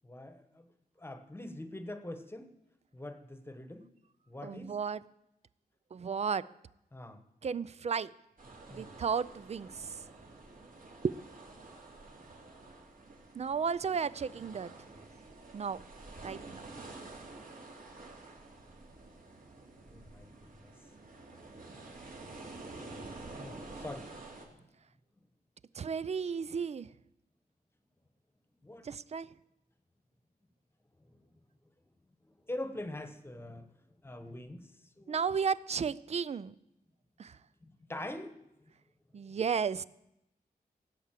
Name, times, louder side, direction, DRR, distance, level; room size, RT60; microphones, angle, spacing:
voice 1, 0.0-0.7 1.0-2.5 2.9-3.9 4.3-4.8 6.9-7.2 8.7-8.9 19.8-20.7 23.4-24.1 28.6-28.8 32.5-33.7 34.0-34.7 35.0-35.2 37.6-38.3, left 1 dB, 15° left, 1.1 m, -43 dB
voice 2, 4.4-5.0 5.9-6.5 7.4-8.1 8.7-9.9 11.0-11.1 13.3-14.7 15.5-15.8 16.2-16.6 25.8-26.9 28.8-29.3 35.1-36.5 37.2-37.3 39.1-39.8, right 6 dB, 45° right, 0.4 m, -33 dB
sound 1, 8.4-24.5, right 2 dB, 60° right, 2.8 m, -49 dB
17.0 x 8.3 x 7.5 m
wide cardioid pair, 155°, 16 cm